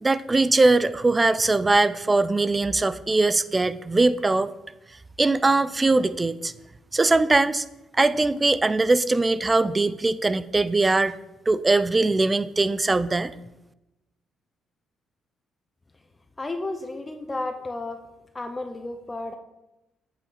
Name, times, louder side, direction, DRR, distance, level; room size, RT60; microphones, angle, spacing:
voice 1, 0.0-4.5 5.2-6.5 6.9-7.6 7.9-11.2 11.5-13.3, right 3 dB, 20° right, 15 dB, 0.4 m, -21 dB
voice 2, 16.4-18.0 18.3-19.4, left 2 dB, 20° left, 7 dB, 0.7 m, -32 dB
8.5 x 6.0 x 4.1 m, 0.94 s
cardioid pair, 90°, 0 cm